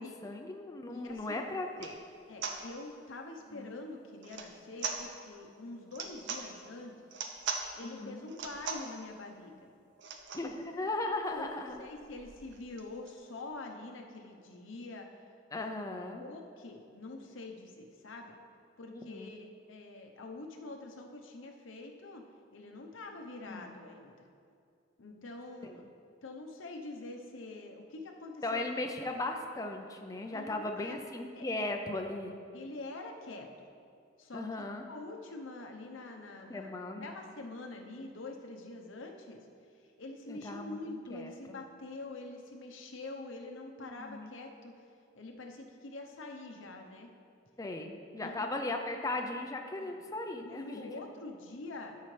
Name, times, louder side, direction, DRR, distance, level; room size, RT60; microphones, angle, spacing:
voice 1, 0.0-2.0 3.5-3.8 7.8-8.3 10.3-11.8 15.5-16.2 18.9-19.3 23.5-23.8 25.6-25.8 28.4-32.4 34.3-34.8 36.5-37.2 40.3-41.6 43.8-44.3 47.6-50.9, left 2 dB, 20° left, 3 dB, 0.4 m, -37 dB
voice 2, 0.9-1.5 2.3-7.2 7.7-9.7 11.4-15.1 15.6-15.7 16.2-18.3 18.8-22.2 22.5-24.3 25.0-25.9 26.2-28.6 30.3-31.0 31.4-31.5 32.5-33.5 34.2-34.4 34.9-39.5 39.7-44.7 45.1-47.1 48.2-48.5 49.8-50.0 50.4-52.0, left 2 dB, 80° left, 3 dB, 0.8 m, -45 dB
sound 1, 1.1-1.2 1.7-2.0 2.4-2.6 4.2-4.5 4.8-5.0 5.9-6.4 7.1-7.7 8.3-8.9 10.0-10.5 11.0-11.1 11.3-11.4 11.7-13.2, right 5 dB, 65° right, 0.7 m, -39 dB
12.5 x 5.6 x 3.2 m, 2.4 s
head